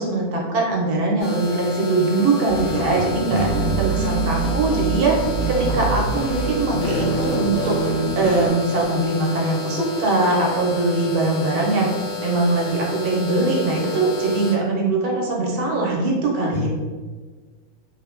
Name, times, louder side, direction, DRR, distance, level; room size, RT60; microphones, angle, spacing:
voice 1, 0.0-3.5 3.8-11.9 12.2-16.7, right 2 dB, 80° right, -2 dB, 1.2 m, -21 dB
sound 1, 1.2-14.5, left 4 dB, 50° left, 1.0 m, -31 dB
sound 2, 2.5-8.5, right 3 dB, 90° left, 1.3 m, -25 dB
voice 2, 2.9-4.0 16.5-16.7, equal, 65° left, -4 dB, 1.2 m, -28 dB
3.3 x 2.1 x 2.4 m, 1.4 s
omnidirectional pair, 1.6 m